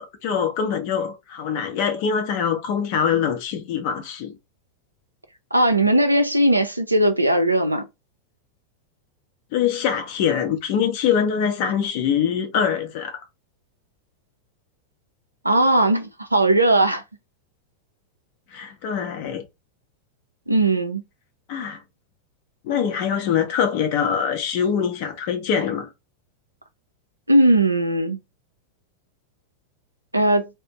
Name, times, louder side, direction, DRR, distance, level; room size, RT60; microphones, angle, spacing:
voice 1, 0.0-4.4 9.5-13.2 18.5-19.4 21.5-21.8 22.6-25.9, left 7 dB, 45° left, 0.6 m, -23 dB
voice 2, 5.5-7.8 15.4-17.0 20.5-21.0 27.3-28.2 30.1-30.5, right 1 dB, 85° right, 0.4 m, -18 dB
2.5 x 2.1 x 2.8 m
figure-of-eight pair, 90°, 0 cm